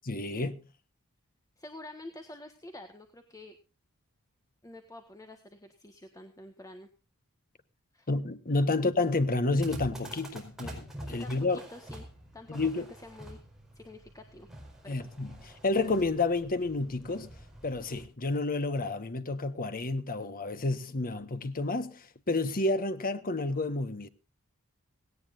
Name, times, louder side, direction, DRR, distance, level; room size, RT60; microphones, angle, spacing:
voice 1, 0.1-0.6 8.1-10.9 11.1-11.6 12.5-12.9 14.9-15.3 15.6-17.3 17.6-24.1, left 2 dB, 40° left, 1.3 m, -30 dB
voice 2, 1.6-3.6 4.6-6.9 7.9-8.1 11.1-12.0 12.3-12.7 13.0-13.4 13.7-14.5 14.8-15.1, left 1 dB, 15° left, 1.5 m, -48 dB
sound 1, 9.6-18.1, right 1 dB, ahead, 5.0 m, -46 dB
18.0 x 17.5 x 2.6 m
head